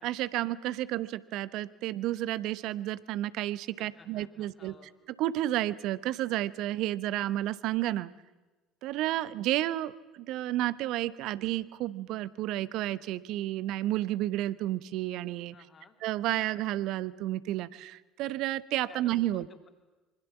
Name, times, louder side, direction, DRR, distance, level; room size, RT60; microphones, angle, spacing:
voice 1, 0.0-4.7 5.2-8.1 8.8-15.5 16.0-19.5, right 14 dB, 60° right, 17 dB, 0.9 m, -31 dB
voice 2, 3.8-4.9 15.5-16.0 18.9-19.7, left 5 dB, 35° left, 5 dB, 3.4 m, -55 dB
26.5 x 24.5 x 7.2 m, 1.2 s
figure-of-eight pair, 60°, 0 cm